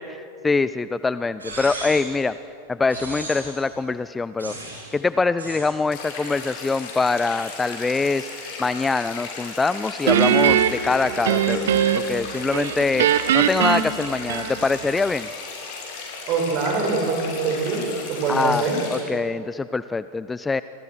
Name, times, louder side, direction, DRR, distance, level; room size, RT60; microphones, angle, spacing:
voice 1, 0.0-2.3 2.7-4.5 4.9-8.3 8.6-13.1 13.3-15.3 18.3-20.6, left 4 dB, 10° left, 15 dB, 0.5 m, -24 dB
sound 1, 1.4-2.2 2.9-3.6 4.4-4.9 5.4-5.8, right 2 dB, 75° right, 6.7 m, -35 dB
sound 2, 5.9-19.0, left 4 dB, 50° left, 7.3 m, -36 dB
Guitar, 10.1-12.2 12.5-14.8, right 9 dB, 60° right, 1.2 m, -20 dB
voice 2, 16.3-18.8, right 4 dB, 40° right, 0 dB, 7.4 m, -24 dB
28.5 x 25.5 x 6.5 m, 2.8 s
figure-of-eight pair, 90°, 0 cm